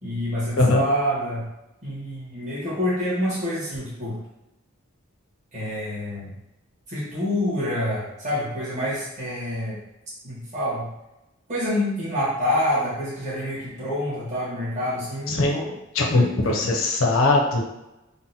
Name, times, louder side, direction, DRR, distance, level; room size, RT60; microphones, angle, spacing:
voice 1, 0.0-1.5 1.8-4.2 5.5-6.3 6.9-9.8 10.2-10.9 11.5-15.7 16.1-16.8, left 1 dB, 40° right, -9 dB, 1.3 m, -27 dB
voice 2, 15.3-15.6 15.9-17.6, left 2 dB, 80° left, 0 dB, 0.6 m, -20 dB
3.8 x 2.0 x 2.7 m, 0.94 s
head